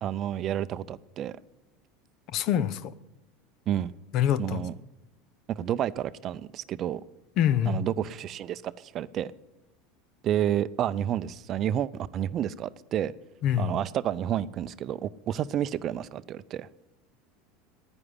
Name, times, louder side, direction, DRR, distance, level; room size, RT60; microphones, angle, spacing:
voice 1, 0.0-1.4 3.7-3.9 4.4-4.7 5.5-7.0 7.7-9.3 10.2-13.1 13.6-16.7, right 10 dB, 45° right, 16 dB, 0.5 m, -30 dB
voice 2, 2.3-2.9 4.1-4.6 7.4-7.8 13.4-13.7, left 10 dB, 55° left, 18 dB, 0.7 m, -25 dB
9.8 x 9.6 x 9.6 m, 0.97 s
hypercardioid pair, 85°, 0 cm